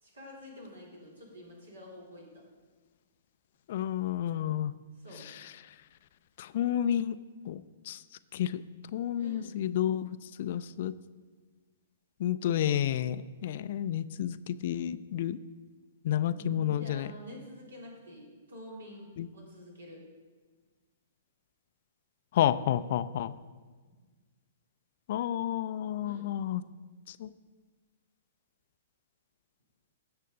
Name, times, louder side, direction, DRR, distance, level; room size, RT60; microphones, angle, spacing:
voice 1, 0.0-2.4 4.9-5.3 9.1-9.6 16.3-20.1 26.0-26.3, equal, 70° right, -2 dB, 3.3 m, -48 dB
voice 2, 3.7-4.7 6.4-7.2 7.5-8.0 8.3-8.6 8.9-10.9 12.2-15.4 16.0-17.0 19.2-19.3 22.3-23.3 25.1-26.6 27.2-27.3, left 11 dB, 50° left, 14 dB, 0.4 m, -30 dB
15.5 x 6.5 x 3.9 m, 1.4 s
figure-of-eight pair, 110°, 0 cm